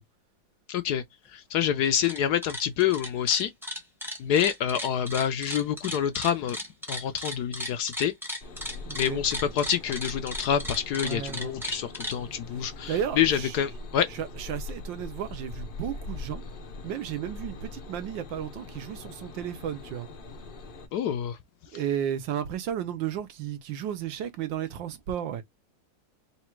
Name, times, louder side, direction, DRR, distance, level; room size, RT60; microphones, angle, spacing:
voice 1, 0.7-1.0 1.3-3.5 4.2-6.6 6.9-8.1 8.9-14.1 20.9-21.4, left 9 dB, 70° left, 1.0 m, -27 dB
sound 1, 1.9-2.2 2.4-12.2, equal, ahead, 0.7 m, -35 dB
sound 2, 8.4-20.9, left 3 dB, 55° left, 0.5 m, -42 dB
voice 2, 8.9-9.2 11.0-11.6 12.5-13.6 14.1-16.4 16.8-20.1 21.7-25.4, right 9 dB, 80° right, 1.5 m, -33 dB
4.0 x 2.4 x 4.4 m
omnidirectional pair, 2.0 m